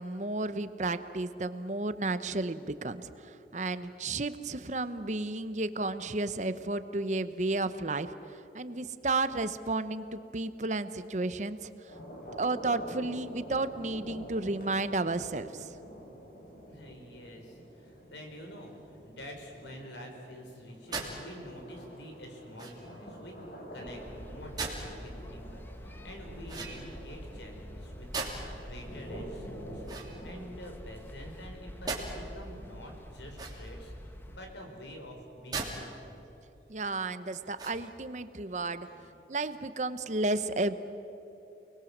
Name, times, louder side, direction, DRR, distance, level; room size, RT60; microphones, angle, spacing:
voice 1, 0.0-8.1 8.5-11.7 12.4-15.7 36.7-38.9 39.3-40.8, right 2 dB, 40° right, 12 dB, 0.8 m, -32 dB
sound 1, 11.9-30.5, right 1 dB, 55° left, 5.1 m, -48 dB
voice 2, 16.7-23.4 23.7-29.8 30.2-33.9 34.3-35.8 38.5-39.1, equal, 85° left, 2 dB, 4.9 m, -47 dB
sound 2, 20.9-21.2 22.6-23.0 24.6-24.9 26.5-27.1 28.1-28.6 29.8-30.7 31.9-32.1 33.3-33.9 35.5-35.7 36.3-36.4 37.5-38.0, right 4 dB, 25° right, 3.0 m, -38 dB
sound 3, 23.9-34.4, equal, 10° left, 1.1 m, -46 dB
29.5 x 20.5 x 7.3 m, 2.9 s
head